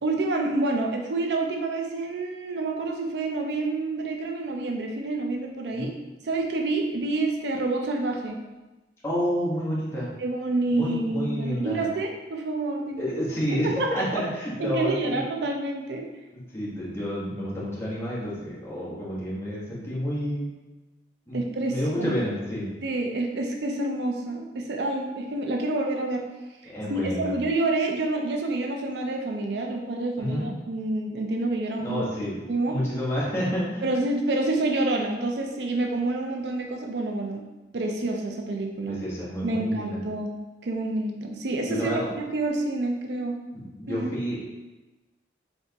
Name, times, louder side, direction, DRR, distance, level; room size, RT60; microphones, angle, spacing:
voice 1, 0.0-5.9 6.2-8.4 10.2-13.2 13.5-13.9 14.6-16.1 21.3-22.1 22.8-26.3 26.6-32.0 32.5-32.8 33.8-37.4 37.7-39.0 39.4-40.3 40.6-43.4 43.9-44.1, right 2 dB, 70° right, 2 dB, 0.5 m, -28 dB
voice 2, 9.0-10.1 10.8-11.8 13.0-15.2 16.3-20.5 21.3-22.7 26.7-27.3 30.2-30.5 31.8-32.4 32.7-33.9 38.9-40.0 41.7-42.1 43.5-44.4, equal, 15° left, -8 dB, 1.3 m, -29 dB
4.4 x 3.3 x 2.9 m, 1.1 s
head